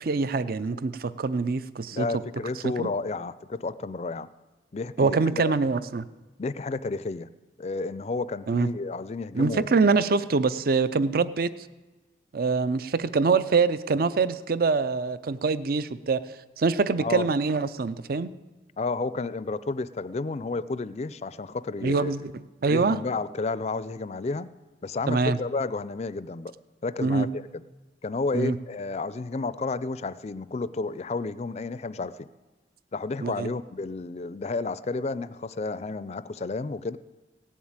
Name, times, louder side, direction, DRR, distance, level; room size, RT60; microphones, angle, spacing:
voice 1, 0.0-2.1 2.6-2.9 5.0-6.0 8.5-8.7 9.3-11.5 12.3-16.2 16.6-18.3 21.8-23.0 25.1-25.4 27.0-27.3 28.3-28.6 33.2-33.5, right 4 dB, 55° right, 15 dB, 0.5 m, -24 dB
voice 2, 1.9-4.3 4.7-5.6 6.4-7.3 7.6-9.7 17.0-17.3 18.8-22.1 22.7-24.5 24.8-26.5 26.8-27.6 28.0-32.3 32.9-37.0, left 3 dB, 35° left, 16 dB, 0.4 m, -31 dB
16.5 x 7.4 x 8.8 m, 1.2 s
head